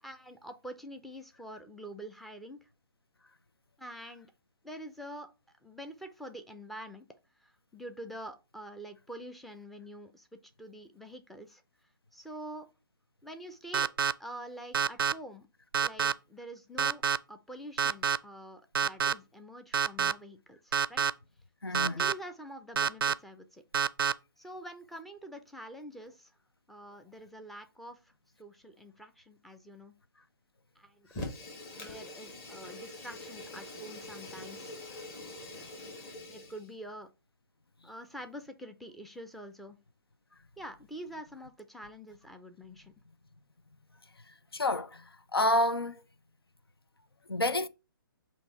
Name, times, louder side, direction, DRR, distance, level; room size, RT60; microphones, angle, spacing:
voice 1, 0.0-2.7 3.8-4.3 4.6-5.3 5.6-7.1 7.4-11.6 12.1-12.7 13.2-13.9 14.2-15.5 15.8-17.0 17.3-21.1 21.7-23.6 24.4-26.4 26.7-29.9 30.8-31.1 31.8-34.7 35.5-35.9 36.3-37.1 37.8-39.8 40.6-42.9, equal, ahead, 0.5 m, -46 dB
sound 1, 13.7-14.1 14.7-15.1 15.7-16.1 16.8-17.2 17.8-18.2 18.7-19.1 19.7-20.1 20.7-21.1 21.7-22.1 22.8-23.1 23.7-24.1, right 7 dB, 70° right, 0.4 m, -27 dB
voice 2, 21.6-22.0 44.5-46.0 47.3-47.7, left 1 dB, 90° left, 0.5 m, -29 dB
Fire, 31.1-36.7, left 2 dB, 25° left, 1.8 m, -44 dB
7.9 x 2.8 x 4.3 m
figure-of-eight pair, 130°, 12 cm